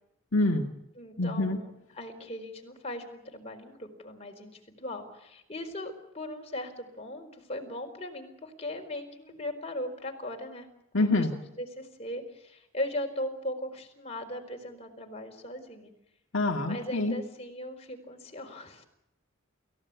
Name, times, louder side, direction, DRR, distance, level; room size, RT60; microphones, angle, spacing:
voice 1, 0.3-0.6 1.2-1.6 10.9-11.3 16.3-17.2, left 2 dB, 65° left, 2 dB, 2.1 m, -26 dB
voice 2, 1.0-10.7 11.0-15.9 16.7-18.8, left 1 dB, 30° left, 3 dB, 4.4 m, -38 dB
29.0 x 16.0 x 8.4 m, 0.82 s
head